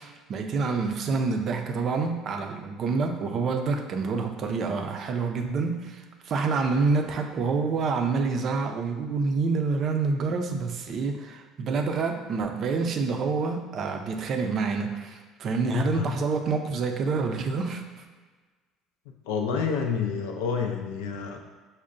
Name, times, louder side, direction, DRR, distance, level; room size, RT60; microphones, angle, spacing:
voice 1, 0.0-18.0, right 4 dB, 55° right, 5 dB, 0.4 m, -27 dB
voice 2, 15.7-16.1 19.3-21.4, left 6 dB, 80° left, 3 dB, 0.4 m, -28 dB
5.3 x 2.1 x 2.5 m, 1.4 s
hypercardioid pair, 75°, 0 cm